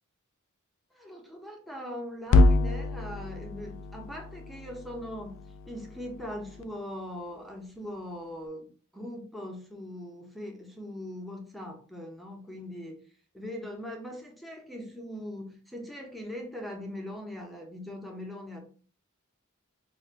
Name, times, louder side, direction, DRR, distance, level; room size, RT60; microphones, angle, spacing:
voice 1, 0.9-13.0 13.3-18.6, left 1 dB, ahead, 0.6 m, -41 dB
sound 1, 2.3-6.6, left 2 dB, 65° left, 0.3 m, -27 dB
4.8 x 2.2 x 2.4 m
head